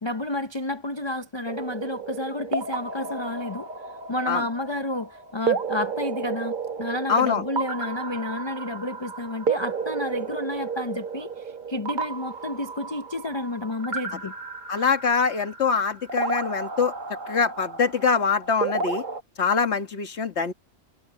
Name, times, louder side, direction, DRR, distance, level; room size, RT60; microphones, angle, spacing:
voice 1, 0.0-3.7 4.1-14.3, left 1 dB, 25° left, 0.7 m, -31 dB
sound 1, 1.4-19.2, right 4 dB, 40° right, 1.2 m, -32 dB
voice 2, 7.1-7.4 14.7-16.9 17.3-19.0 19.4-20.5, left 5 dB, 60° left, 1.8 m, -24 dB
omnidirectional pair, 1.3 m